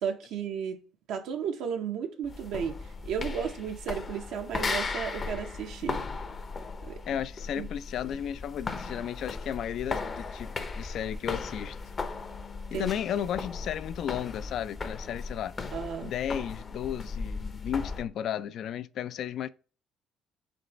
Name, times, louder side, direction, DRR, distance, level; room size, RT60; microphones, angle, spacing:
voice 1, 0.0-0.8 1.1-2.8 3.0-6.0 6.8-7.0 7.5-7.7 12.7-12.9 15.7-16.1, right 7 dB, 80° right, 0.8 m, -33 dB
sound 1, 2.2-18.1, left 4 dB, 35° left, 0.7 m, -37 dB
voice 2, 7.1-11.8 12.7-15.6 16.0-19.5, left 9 dB, 65° left, 0.3 m, -34 dB
5.2 x 3.3 x 3.0 m
cardioid pair, 85°, 0 cm